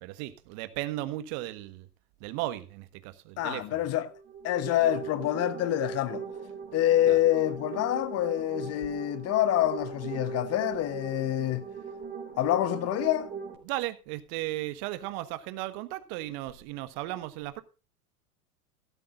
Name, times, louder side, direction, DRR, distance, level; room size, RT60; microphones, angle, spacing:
voice 1, 0.0-1.9 2.2-3.8 7.1-7.2 13.6-17.6, right 16 dB, 45° right, 1.4 m, -36 dB
voice 2, 3.4-4.1 4.4-6.2 6.7-11.7 12.4-13.3, left 13 dB, 35° left, 1.0 m, -26 dB
sound 1, 4.1-13.5, right 6 dB, 25° right, 3.9 m, -39 dB
16.5 x 13.0 x 2.5 m
figure-of-eight pair, 90°, 46 cm